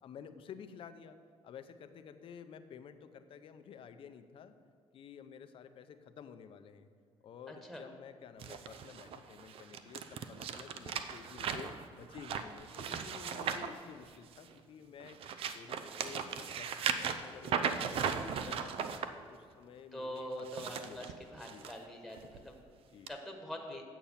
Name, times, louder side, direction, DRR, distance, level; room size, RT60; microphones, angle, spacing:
voice 1, 0.0-1.2 1.4-4.5 4.9-6.9 7.2-15.2 15.5-21.2 21.4-21.7 22.9-23.1, left 7 dB, 60° left, 10 dB, 0.6 m, -52 dB
voice 2, 7.5-7.8 19.9-22.5 23.1-23.8, equal, ahead, 1 dB, 1.5 m, -44 dB
sound 1, 8.4-14.5 15.0-19.1 20.3-21.7 22.2-22.4 23.1-23.2, right 7 dB, 65° right, 0.6 m, -37 dB
8.7 x 7.0 x 5.7 m, 2.1 s
cardioid pair, 105°, 11 cm